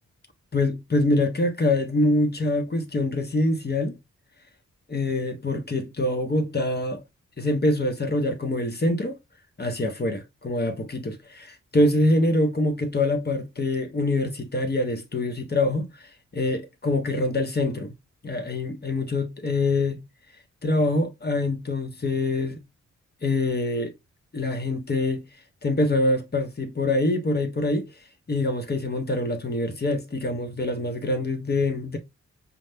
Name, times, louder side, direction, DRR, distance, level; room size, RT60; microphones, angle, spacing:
voice 1, 0.5-4.0 4.9-7.0 7.4-9.2 9.6-15.9 16.3-17.9 18.2-20.0 20.6-22.6 23.2-23.9 24.3-25.2 25.6-27.9 28.3-32.0, left 2 dB, 35° left, 1.1 m, -25 dB
5.5 x 2.4 x 3.5 m
cardioid pair, 60°, 30 cm